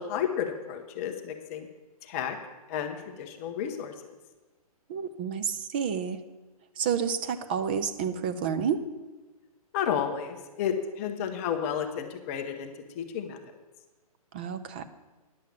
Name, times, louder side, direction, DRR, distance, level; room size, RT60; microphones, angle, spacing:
voice 1, 0.0-1.7 2.1-2.4 2.7-3.9 9.7-12.7 13.0-13.4, left 8 dB, 20° left, 4 dB, 0.7 m, -32 dB
voice 2, 4.9-6.2 6.8-8.8 14.3-14.8, right 7 dB, 15° right, 10 dB, 0.3 m, -29 dB
10.5 x 7.5 x 7.2 m, 1.2 s
hypercardioid pair, 165°, 20 cm